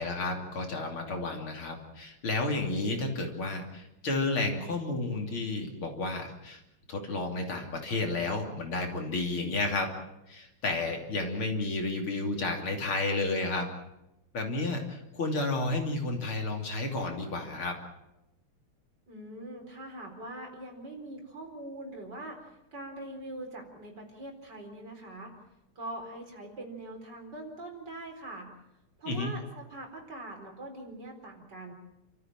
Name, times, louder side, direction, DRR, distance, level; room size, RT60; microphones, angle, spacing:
voice 1, 0.0-6.6 6.9-9.9 10.3-13.7 14.3-17.8 29.1-29.3, left 2 dB, 75° left, 2 dB, 3.9 m, -31 dB
voice 2, 19.1-22.4 22.7-25.3 25.8-28.5 29.0-31.7, right 1 dB, 50° right, 2 dB, 4.8 m, -42 dB
28.5 x 14.0 x 8.9 m, 0.90 s
omnidirectional pair, 2.4 m